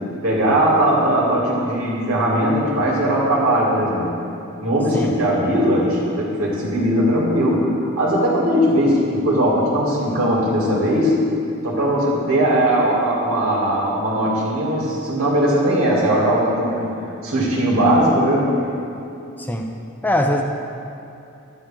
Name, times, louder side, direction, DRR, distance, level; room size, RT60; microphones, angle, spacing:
voice 1, 0.2-4.1 4.6-11.2 11.6-16.9 17.2-18.5, right 1 dB, 85° right, -5 dB, 2.9 m, -19 dB
voice 2, 20.0-20.4, left 1 dB, 10° left, 2 dB, 0.6 m, -21 dB
12.5 x 10.0 x 3.8 m, 2.8 s
head